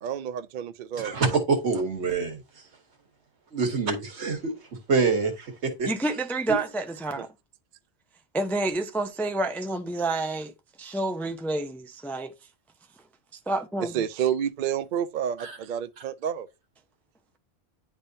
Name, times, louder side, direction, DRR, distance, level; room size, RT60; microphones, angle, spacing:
voice 1, 0.0-1.4 7.2-7.3 13.8-16.5, right 9 dB, 55° right, 0.6 m, -30 dB
voice 2, 1.0-2.4 3.5-4.5 4.9-5.9 6.5-6.6 15.4-15.6, right 4 dB, 85° right, 1.6 m, -26 dB
voice 3, 5.9-7.3 8.3-10.5 10.8-12.3 13.5-14.0, right 2 dB, 5° left, 0.3 m, -29 dB
10.0 x 3.5 x 2.7 m
omnidirectional pair, 1.1 m